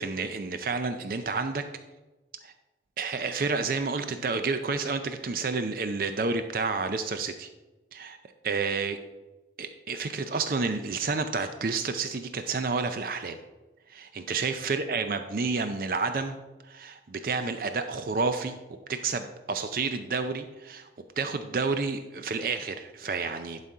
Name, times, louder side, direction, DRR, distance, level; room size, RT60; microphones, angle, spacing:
voice 1, 0.0-1.6 2.4-2.5 3.0-7.5 7.9-8.2 8.4-9.0 9.6-13.4 13.9-16.4 16.7-18.6 18.9-20.9 21.2-23.6, right 4 dB, 50° right, 8 dB, 0.5 m, -30 dB
11.0 x 4.1 x 4.8 m, 1.2 s
head